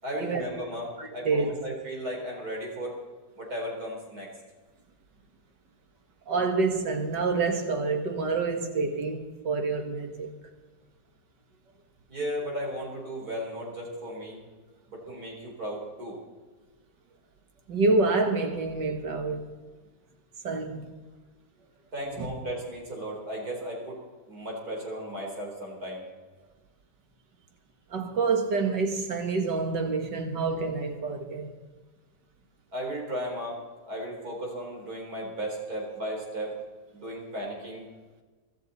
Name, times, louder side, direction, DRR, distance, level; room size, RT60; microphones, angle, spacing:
voice 1, 0.0-0.9 1.1-3.0 3.4-4.3 12.1-14.4 14.9-16.2 21.9-24.0 24.3-26.1 32.7-33.6 33.9-36.5 36.9-37.9, equal, 60° right, 4.5 m, -35 dB
voice 2, 1.0-1.5 6.3-10.3 17.7-19.5 20.4-20.9 22.1-22.3 27.9-31.5, right 3 dB, 85° right, 2.3 m, -27 dB
24.5 x 12.5 x 4.2 m
omnidirectional pair, 1.9 m